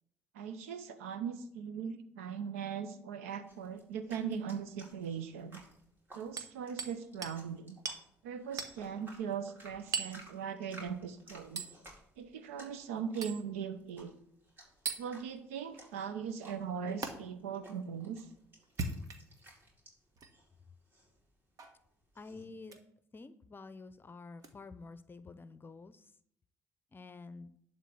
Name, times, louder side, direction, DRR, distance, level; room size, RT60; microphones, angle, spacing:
voice 1, 0.3-5.6 6.1-7.8 8.2-11.6 12.2-14.1 15.0-18.3, right 7 dB, 90° right, 11 dB, 0.8 m, -39 dB
sound 1, 3.5-22.4, right 1 dB, 30° right, 4.2 m, -58 dB
Hammer, 6.4-7.0 7.2-7.4 7.8-8.0 8.6-8.8 9.9-10.2 11.6-11.7 13.2-13.4 14.8-15.0 17.0-17.1 18.6-19.4 20.2-20.3 21.6-21.8 22.6-22.8 24.4-24.5, right 4 dB, 55° right, 1.4 m, -38 dB
voice 2, 22.2-22.8 23.1-26.0 26.9-27.5, left 3 dB, 30° left, 13 dB, 0.7 m, -49 dB
11.0 x 4.0 x 7.2 m, 0.71 s
hypercardioid pair, 60°, 7 cm